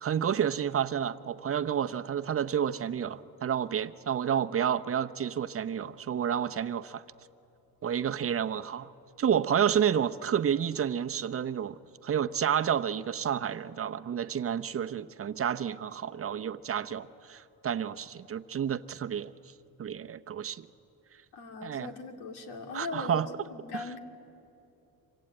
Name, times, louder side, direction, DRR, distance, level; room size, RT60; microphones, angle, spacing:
voice 1, 0.0-7.0 7.8-8.9 9.2-19.5 19.8-20.7 21.6-21.9 22.7-23.3 23.7-23.8, right 8 dB, 35° right, 10 dB, 0.7 m, -30 dB
voice 2, 21.3-24.0, left 3 dB, 90° left, 5 dB, 2.5 m, -40 dB
26.5 x 25.0 x 8.8 m, 2.8 s
cardioid pair, 120°, 38 cm